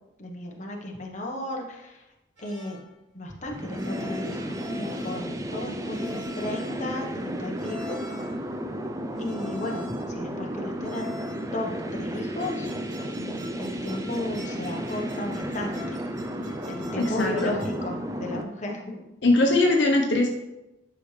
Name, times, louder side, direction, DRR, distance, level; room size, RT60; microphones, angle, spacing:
voice 1, 0.2-2.0 2.4-2.8 3.1-8.0 9.2-11.1 11.5-12.7 13.2-16.0 16.7-19.0, left 1 dB, 35° left, 0 dB, 1.2 m, -34 dB
sound 1, 2.4-2.9 3.7-5.4 5.9-6.8 7.6-8.4 9.1-10.2 10.8-11.5 12.1-17.9, left 3 dB, 75° right, 3.1 m, -46 dB
sound 2, 3.4-18.4, equal, 15° right, 0.5 m, -33 dB
voice 2, 17.0-17.5 19.2-20.3, left 2 dB, 70° left, 1 dB, 0.9 m, -21 dB
11.0 x 6.3 x 3.3 m, 0.97 s
head